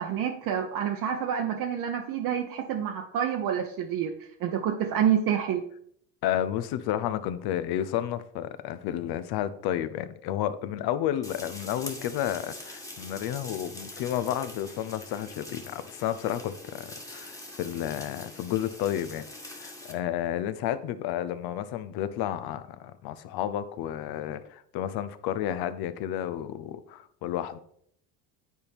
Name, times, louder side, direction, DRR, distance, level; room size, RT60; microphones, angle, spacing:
voice 1, 0.0-4.1 4.4-5.6, right 9 dB, 50° right, 0.8 m, -28 dB
voice 2, 6.2-27.6, left 11 dB, 65° left, 0.7 m, -31 dB
sound 1, 11.2-19.9, left 1 dB, 10° left, 1.4 m, -44 dB
9.5 x 4.2 x 3.5 m
supercardioid pair, 95°, 42 cm